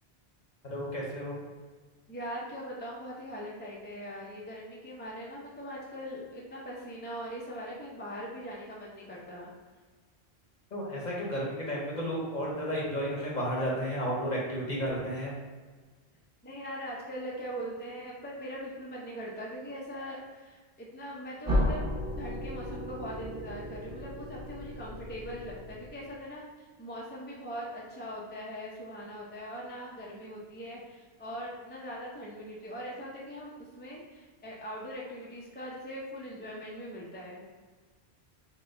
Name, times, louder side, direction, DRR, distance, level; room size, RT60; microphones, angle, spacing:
voice 1, 0.6-1.3 10.7-15.3, equal, 45° left, -3 dB, 0.9 m, -32 dB
voice 2, 2.1-9.5 16.4-21.8 22.2-37.5, equal, 15° left, -4 dB, 0.5 m, -41 dB
sound 1, 21.4-26.2, left 1 dB, 10° right, 1.1 m, -34 dB
4.1 x 2.2 x 3.8 m, 1.4 s
omnidirectional pair, 1.1 m